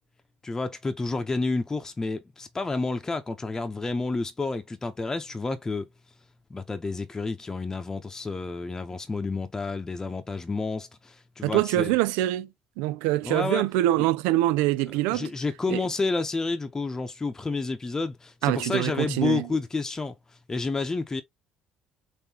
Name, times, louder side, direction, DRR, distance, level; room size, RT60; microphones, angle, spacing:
voice 1, 0.4-5.9 6.5-11.9 13.2-13.6 13.9-14.1 15.0-21.2, left 3 dB, 20° left, 0.8 m, -30 dB
voice 2, 11.4-12.5 12.8-15.3 15.7-15.8 18.4-19.4, right 15 dB, 85° right, 0.3 m, -24 dB
3.8 x 2.9 x 2.9 m
supercardioid pair, 80°, 3 cm